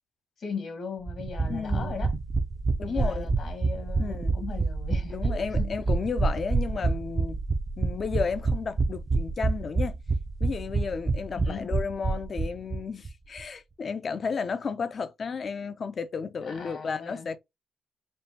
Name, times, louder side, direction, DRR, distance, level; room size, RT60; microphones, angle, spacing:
voice 1, 0.4-2.1 2.8-5.7 11.3-11.7 16.4-17.3, left 5 dB, 65° left, 1.4 m, -38 dB
sound 1, 1.1-12.8 13.1-13.2 13.4-13.5, right 3 dB, 35° right, 0.6 m, -27 dB
voice 2, 1.5-2.0 2.8-3.3 4.0-4.4 5.1-7.4 7.8-10.0 10.4-17.4, left 5 dB, 50° left, 0.6 m, -33 dB
5.3 x 2.4 x 2.8 m
cardioid pair, 90°, 0 cm